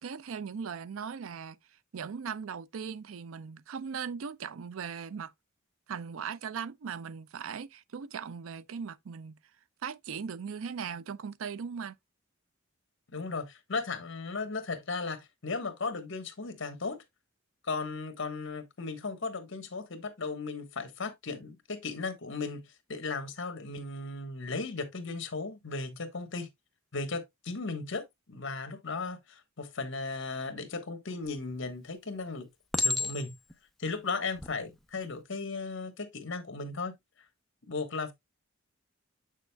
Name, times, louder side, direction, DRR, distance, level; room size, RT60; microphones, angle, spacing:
voice 1, 0.0-1.6 1.9-5.3 5.9-9.4 9.8-11.9, right 6 dB, 75° right, 0.4 m, -38 dB
voice 2, 13.1-17.0 17.6-22.6 22.9-26.5 26.9-32.5 32.8-33.3 33.8-36.9 37.7-38.1, left 4 dB, 65° left, 1.3 m, -36 dB
Chink clink, 31.2-31.8 32.7-33.5 34.3-34.5, left 3 dB, ahead, 0.6 m, -31 dB
7.9 x 6.3 x 2.2 m
head